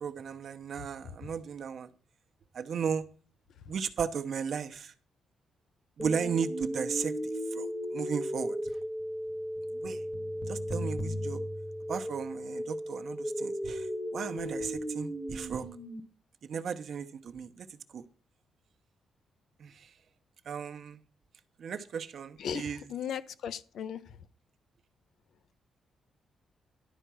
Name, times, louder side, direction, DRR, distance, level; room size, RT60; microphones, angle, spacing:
voice 1, 0.0-1.9 2.5-3.0 3.7-4.9 6.0-7.1 7.5-8.7 9.8-10.0 10.5-11.4 11.9-13.9 14.1-15.7 16.4-17.7 17.9-18.0 19.6-19.9 20.5-21.0 21.6-22.9, right 6 dB, 55° right, 0.8 m, -35 dB
sound 1, 6.0-16.0, equal, 10° left, 1.0 m, -35 dB
voice 2, 22.4-24.0, left 8 dB, 70° left, 0.6 m, -37 dB
11.5 x 4.6 x 6.1 m
cardioid pair, 120°, 0 cm